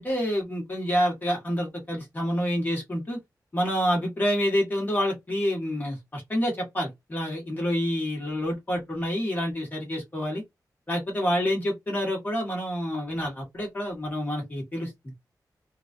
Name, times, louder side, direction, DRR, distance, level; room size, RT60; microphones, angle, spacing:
voice 1, 0.0-3.2 3.5-10.4 10.9-14.9, equal, 25° left, 1.4 m, -28 dB
3.2 x 2.3 x 2.5 m
wide cardioid pair, 155°, 7 cm